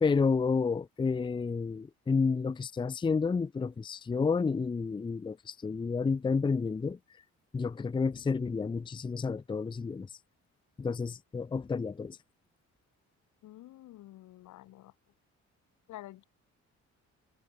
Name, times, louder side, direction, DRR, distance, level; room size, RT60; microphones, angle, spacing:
voice 1, 0.0-7.0 7.5-10.1 10.8-12.2, left 5 dB, 15° left, 0.5 m, -30 dB
voice 2, 13.4-14.9 15.9-16.2, left 15 dB, 75° left, 1.0 m, -49 dB
cardioid pair, 90°, 30 cm